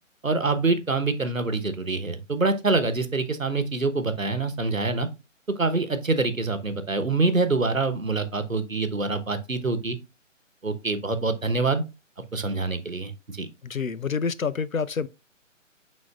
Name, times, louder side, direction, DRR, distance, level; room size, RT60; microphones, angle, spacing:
voice 1, 0.2-5.1 5.6-10.0 10.6-11.8 12.2-13.5, right 3 dB, 85° right, 1.1 m, -25 dB
voice 2, 13.6-15.1, left 5 dB, 90° left, 0.6 m, -27 dB
10.0 x 4.0 x 2.4 m
figure-of-eight pair, 140°, 39 cm